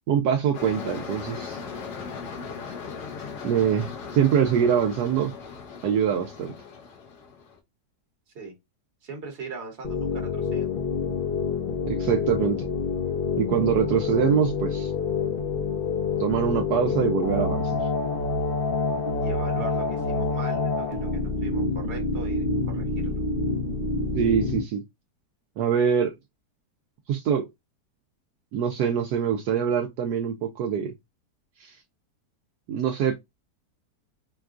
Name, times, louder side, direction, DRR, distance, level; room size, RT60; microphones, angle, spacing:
voice 1, 0.1-1.6 3.4-5.3 5.8-6.5 11.9-12.6 13.4-14.9 16.2-17.8 24.1-24.8 25.6-26.1 27.1-27.5 28.5-30.9 31.6-31.8 32.7-33.1, right 8 dB, 75° right, 1.1 m, -24 dB
sound 1, 0.5-7.6, left 5 dB, 70° left, 1.4 m, -38 dB
voice 2, 9.0-10.7 19.2-22.5 22.7-23.1, right 4 dB, 45° right, 1.4 m, -39 dB
sound 2, 9.8-24.6, left 4 dB, 45° left, 0.8 m, -27 dB
4.6 x 2.3 x 2.4 m
omnidirectional pair, 1.8 m